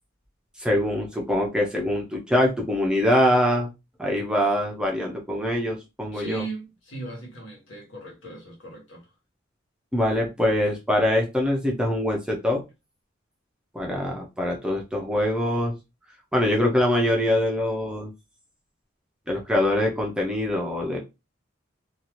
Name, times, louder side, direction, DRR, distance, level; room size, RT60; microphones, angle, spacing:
voice 1, 0.6-3.7 4.0-6.4 9.9-12.6 13.7-15.7 16.3-18.1 19.3-21.0, left 1 dB, 5° right, 0.5 m, -23 dB
voice 2, 6.1-9.1, right 2 dB, 65° left, 1.3 m, -38 dB
2.7 x 2.4 x 2.9 m
head